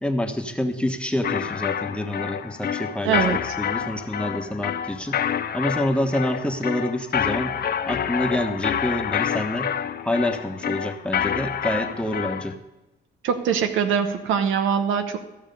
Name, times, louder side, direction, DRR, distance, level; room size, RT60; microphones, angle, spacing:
voice 1, 0.0-5.2 5.5-7.5 7.9-9.7 10.0-12.5, left 1 dB, 5° left, 5 dB, 1.2 m, -27 dB
sound 1, 1.2-12.5, left 9 dB, 50° left, 0.6 m, -28 dB
voice 2, 3.0-3.4 13.2-15.2, right 7 dB, 85° right, 8 dB, 1.0 m, -22 dB
14.5 x 6.3 x 5.3 m, 1.1 s
cardioid pair, 90°, 20 cm